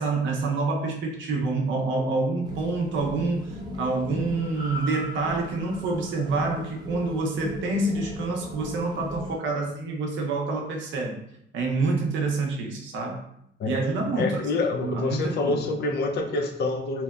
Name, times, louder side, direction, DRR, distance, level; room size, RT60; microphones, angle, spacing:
voice 1, 0.0-3.5 3.8-11.2 11.5-13.2 13.7-14.4 14.8-15.7, right 3 dB, 75° right, 1 dB, 0.6 m, -27 dB
sound 1, 2.4-9.4, left 1 dB, 20° right, 0.6 m, -38 dB
voice 2, 14.2-17.0, left 3 dB, 55° left, 4 dB, 0.4 m, -27 dB
2.8 x 2.0 x 2.2 m, 0.74 s
cardioid pair, 90°, 20 cm